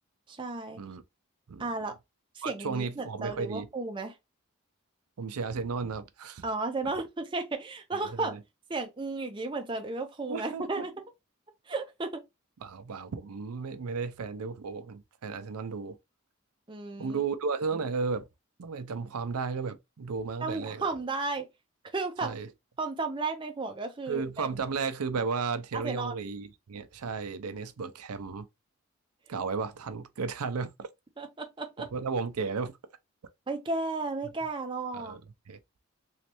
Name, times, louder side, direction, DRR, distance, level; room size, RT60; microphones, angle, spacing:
voice 1, 0.3-0.8 1.6-1.9 2.3-4.1 6.4-8.3 8.7-10.9 11.7-12.2 16.7-17.2 20.4-21.5 21.9-22.3 22.8-24.5 25.7-26.3 31.2-31.9 33.5-35.2, right 3 dB, 20° right, 0.6 m, -34 dB
voice 2, 2.4-3.7 5.2-6.4 8.1-8.4 10.3-10.9 12.6-16.0 17.0-18.3 18.6-20.8 22.2-22.5 24.1-28.5 29.3-30.9 31.9-32.7 34.9-35.2 35.5-35.6, right 5 dB, 85° right, 0.5 m, -34 dB
3.1 x 3.1 x 2.9 m
head